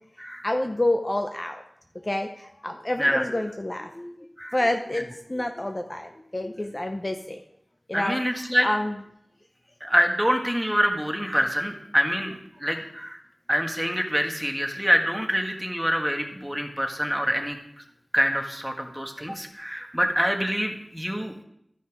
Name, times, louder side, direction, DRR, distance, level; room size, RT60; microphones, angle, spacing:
voice 1, 0.4-1.6 2.0-4.2 4.5-7.4 7.9-9.0, left 1 dB, 30° left, 5 dB, 0.7 m, -28 dB
voice 2, 7.9-8.7 9.8-12.3 12.6-13.2 13.5-17.6 18.1-21.4, equal, ahead, 3 dB, 1.6 m, -25 dB
12.5 x 5.6 x 4.8 m, 0.74 s
wide cardioid pair, 45°, 0 cm